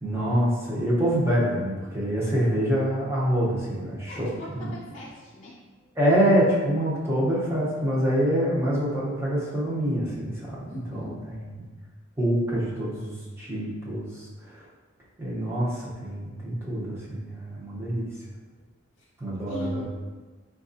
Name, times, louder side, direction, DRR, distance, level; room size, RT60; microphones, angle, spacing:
voice 1, 0.0-4.3 4.5-4.7 6.0-11.7 12.2-14.6 15.2-18.1 19.2-19.9, equal, 15° right, -7 dB, 0.7 m, -26 dB
voice 2, 4.1-5.5 10.7-11.1 18.5-18.6 19.0-19.1 19.3-19.9, left 1 dB, 35° left, -8 dB, 0.5 m, -39 dB
4.4 x 2.3 x 2.6 m, 1.3 s
head